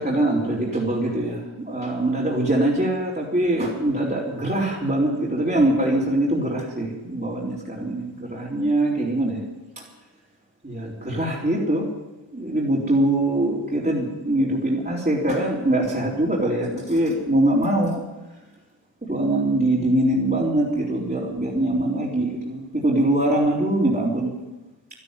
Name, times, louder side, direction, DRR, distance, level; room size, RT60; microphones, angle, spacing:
voice 1, 0.0-1.4 1.7-9.4 10.6-11.9 12.3-18.0 19.1-24.3, right 1 dB, 20° right, -6 dB, 4.2 m, -23 dB
13.0 x 12.0 x 9.2 m, 1.0 s
cardioid pair, 50°, 46 cm